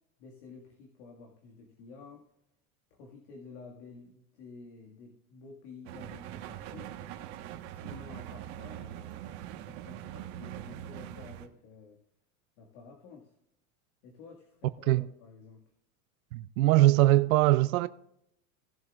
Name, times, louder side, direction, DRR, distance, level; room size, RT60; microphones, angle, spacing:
voice 1, 0.2-2.3 2.9-7.0 7.7-12.0 12.6-13.4 14.0-15.6, left 4 dB, 55° left, 2.0 m, -51 dB
sound 1, 5.9-11.5, right 11 dB, 50° right, 1.4 m, -42 dB
voice 2, 16.3-17.9, right 16 dB, 80° right, 0.6 m, -22 dB
18.5 x 7.5 x 2.4 m
supercardioid pair, 170°, 42 cm